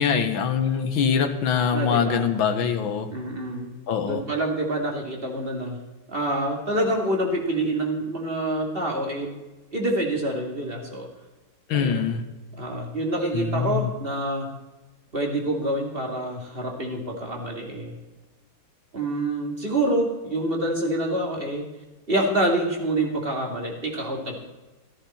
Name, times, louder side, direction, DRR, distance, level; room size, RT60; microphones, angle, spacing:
voice 1, 0.0-3.1 3.9-4.2 11.7-12.2 13.3-13.9, left 7 dB, 85° left, 8 dB, 1.9 m, -23 dB
voice 2, 1.7-2.2 3.1-3.7 4.0-5.8 6.1-9.3 9.7-11.1 11.7-12.0 12.5-14.5 15.1-18.0 18.9-21.7 22.1-24.4, right 1 dB, 30° right, 0 dB, 2.4 m, -27 dB
14.0 x 14.0 x 4.3 m, 1.1 s
omnidirectional pair, 2.1 m